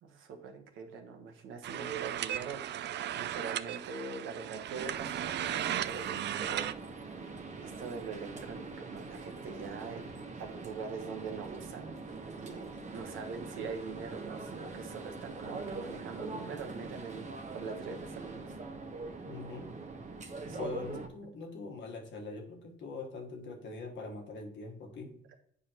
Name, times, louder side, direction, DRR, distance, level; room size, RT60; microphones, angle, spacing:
voice 1, 0.0-10.1 10.3-12.0 12.4-18.5 20.4-20.7, right 5 dB, 85° right, 1.2 m, -43 dB
sound 1, 1.6-6.7, right 11 dB, 60° right, 0.4 m, -36 dB
sound 2, 4.7-21.1, right 3 dB, 35° right, 1.0 m, -43 dB
voice 2, 19.2-19.8 20.6-25.2, left 3 dB, 70° left, 1.4 m, -43 dB
8.2 x 5.0 x 3.0 m
cardioid pair, 90°, 20 cm